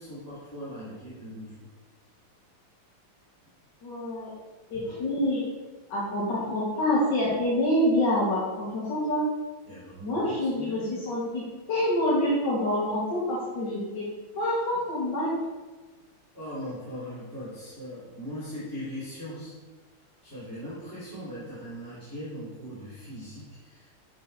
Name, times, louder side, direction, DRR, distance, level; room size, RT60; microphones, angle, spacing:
voice 1, 0.0-1.7 4.7-4.8 9.7-11.1 16.3-19.5 20.2-23.9, equal, 10° left, -11 dB, 3.0 m, -40 dB
voice 2, 3.8-4.3 4.7-5.4 5.9-9.2 10.0-14.1 14.4-15.3, left 1 dB, 55° left, -7 dB, 2.4 m, -27 dB
12.5 x 4.6 x 4.2 m, 1.3 s
omnidirectional pair, 2.4 m